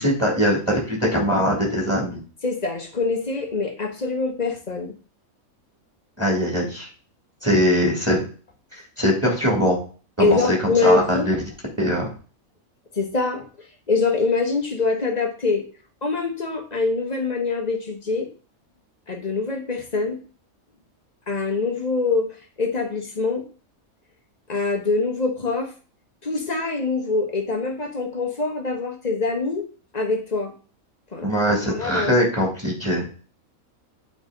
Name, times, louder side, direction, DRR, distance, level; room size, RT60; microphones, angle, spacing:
voice 1, 0.0-2.2 6.2-6.9 7.4-8.2 9.0-9.8 10.2-11.3 11.8-12.1 31.2-33.0, equal, 10° right, -2 dB, 2.7 m, -21 dB
voice 2, 2.4-4.9 10.2-11.3 12.9-13.5 13.9-15.6 16.0-18.3 19.1-20.2 21.3-22.3 22.6-23.4 24.5-25.7 26.2-29.6 29.9-30.5 31.1-31.3 31.7-32.5, left 3 dB, 30° left, 3 dB, 1.3 m, -24 dB
8.8 x 4.3 x 4.0 m, 0.38 s
omnidirectional pair, 1.5 m